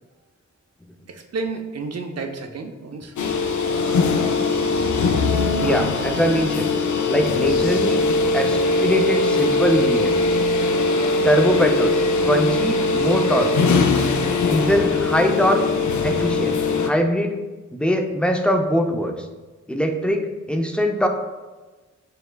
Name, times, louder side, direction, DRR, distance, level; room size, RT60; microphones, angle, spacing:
voice 1, 1.1-3.1, right 4 dB, 55° right, 4 dB, 0.6 m, -31 dB
sound 1, 3.2-16.9, left 3 dB, 65° left, 0.5 m, -21 dB
voice 2, 5.6-6.7 7.1-8.0 8.3-10.1 11.2-12.0 12.3-13.6 14.4-15.6 16.0-17.4 17.7-19.3 19.7-21.1, equal, 5° left, 3 dB, 0.4 m, -22 dB
6.5 x 2.3 x 2.2 m, 1.2 s
cardioid pair, 50°, 32 cm